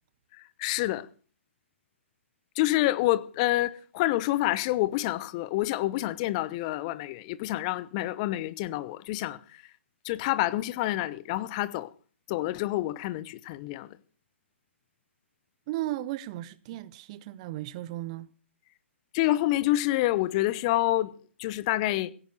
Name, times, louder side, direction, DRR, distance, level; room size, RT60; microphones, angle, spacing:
voice 1, 0.6-1.1 2.5-9.6 10.0-11.9 12.3-13.9 19.1-21.1 21.4-22.1, left 16 dB, 30° left, 0.9 m, -27 dB
voice 2, 15.7-18.3, right 15 dB, 30° right, 0.6 m, -35 dB
16.5 x 9.9 x 6.4 m
figure-of-eight pair, 130°, 7 cm